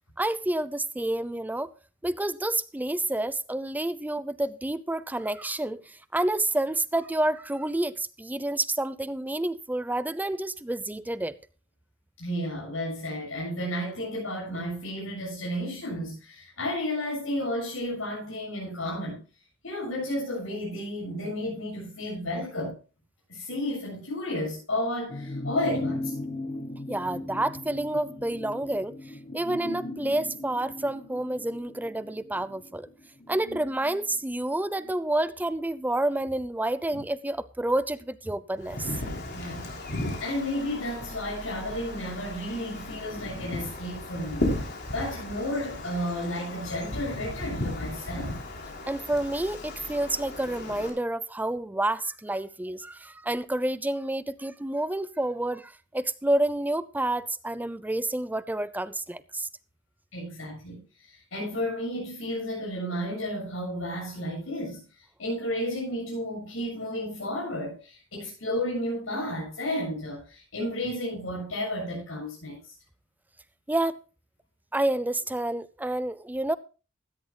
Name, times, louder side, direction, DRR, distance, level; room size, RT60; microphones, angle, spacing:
voice 1, 0.2-1.7 2.0-11.4 26.9-29.0 29.3-32.9 33.3-38.9 48.9-59.5 73.7-74.0 74.7-76.5, right 1 dB, 10° right, 0.5 m, -29 dB
voice 2, 12.2-19.2 19.6-22.8 23.3-26.1 39.3-39.8 40.2-44.4 44.9-48.3 60.1-60.8 61.1-64.8 65.2-72.7, left 1 dB, 85° left, 7.6 m, -32 dB
sound 1, 25.1-34.9 35.3-35.4, left 2 dB, 30° left, 0.9 m, -38 dB
Wind, 38.6-50.9, left 1 dB, 55° left, 3.4 m, -35 dB
16.5 x 14.0 x 2.2 m
head